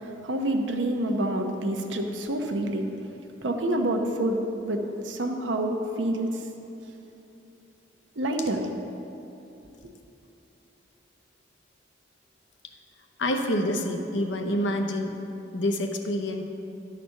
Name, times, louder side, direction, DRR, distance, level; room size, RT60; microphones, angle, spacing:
voice 1, 0.0-2.9 3.4-4.8 5.0-6.3 8.2-8.6 9.8-9.9, right 1 dB, 90° right, 3 dB, 0.8 m, -27 dB
voice 2, 13.2-15.1 15.5-16.4, left 1 dB, 80° left, 4 dB, 0.8 m, -27 dB
11.0 x 4.2 x 6.4 m, 2.9 s
head